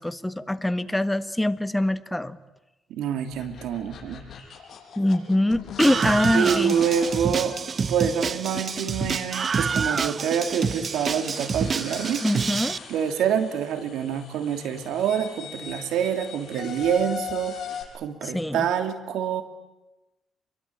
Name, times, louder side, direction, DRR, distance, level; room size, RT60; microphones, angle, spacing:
voice 1, 0.0-2.4 5.0-6.8 12.2-12.9 18.2-18.6, left 1 dB, 5° left, 12 dB, 1.4 m, -24 dB
voice 2, 2.9-4.2 6.3-7.6 7.9-12.3 12.9-17.6 17.9-19.4, right 8 dB, 85° right, 7 dB, 2.9 m, -26 dB
sound 1, 3.3-17.8, left 7 dB, 60° left, 7.0 m, -41 dB
Screaming, 5.8-12.8, right 5 dB, 45° right, 1.0 m, -27 dB
28.0 x 23.0 x 8.8 m, 1.0 s
cardioid pair, 90°, 0 cm